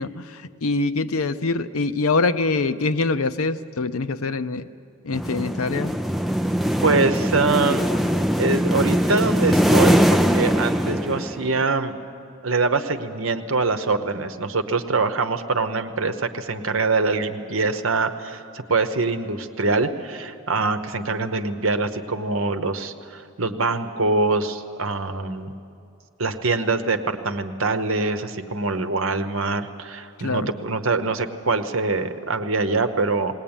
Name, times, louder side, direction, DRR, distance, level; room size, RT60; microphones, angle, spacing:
voice 1, 0.0-4.7 5.0-6.0 30.2-30.5, left 3 dB, 80° left, 12 dB, 0.7 m, -24 dB
sound 1, 5.1-11.6, equal, ahead, 0.5 m, -21 dB
voice 2, 6.8-7.9 8.4-11.9 12.4-25.5 26.2-33.3, right 3 dB, 70° right, 8 dB, 1.0 m, -24 dB
19.5 x 19.5 x 8.9 m, 2.4 s
head